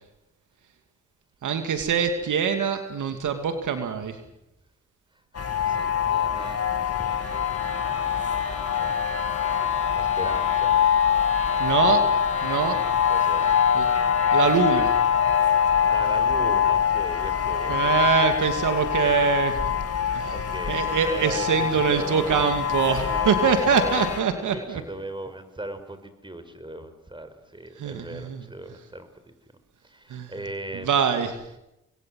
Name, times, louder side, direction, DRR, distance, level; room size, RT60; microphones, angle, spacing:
voice 1, 1.4-4.2 11.6-12.0 12.4-12.8 13.7-13.9 14.3-14.9 17.7-19.6 20.1-20.4 20.7-24.8 27.8-28.4 30.1-30.3 30.7-31.4, right 7 dB, 85° right, 7 dB, 2.7 m, -24 dB
sound 1, 5.3-24.2, left 8 dB, 55° left, 2.9 m, -24 dB
voice 2, 5.3-9.3 10.0-10.8 12.6-12.8 13.1-13.6 15.9-18.4 20.3-22.4 22.9-23.3 23.6-24.1 24.5-29.3 29.8-30.9, right 1 dB, 15° right, 10 dB, 4.9 m, -39 dB
sound 2, 6.6-16.3, left 3 dB, 25° left, 4.3 m, -39 dB
27.5 x 21.5 x 7.8 m, 0.87 s
cardioid pair, 60°, 30 cm